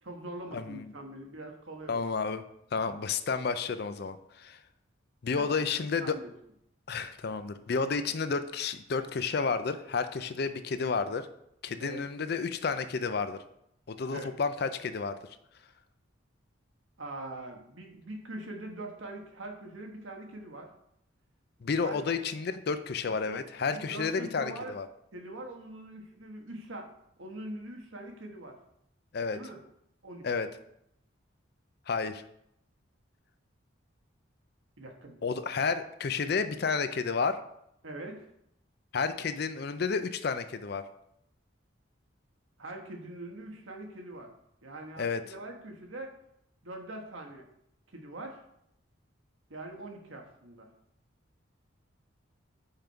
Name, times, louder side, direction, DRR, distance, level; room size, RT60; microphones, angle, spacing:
voice 1, 0.0-2.0 5.4-6.3 11.8-12.0 14.1-14.3 17.0-20.7 21.8-22.0 23.1-23.5 23.7-24.8 25.1-26.9 27.2-28.6 29.3-29.6 30.0-30.3 34.8-35.2 37.8-38.3 42.6-44.3 44.6-46.1 46.6-47.4 47.9-48.4 49.5-50.7, right 2 dB, 80° right, 2 dB, 1.2 m, -43 dB
voice 2, 0.5-0.8 1.9-2.4 2.7-4.6 5.2-6.2 6.9-11.3 11.6-13.4 13.9-15.1 21.6-24.9 29.1-29.4 30.2-30.5 31.9-32.2 35.2-37.4 38.9-40.8 45.0-45.2, left 5 dB, 50° left, 11 dB, 0.4 m, -31 dB
5.6 x 5.2 x 4.5 m, 0.76 s
head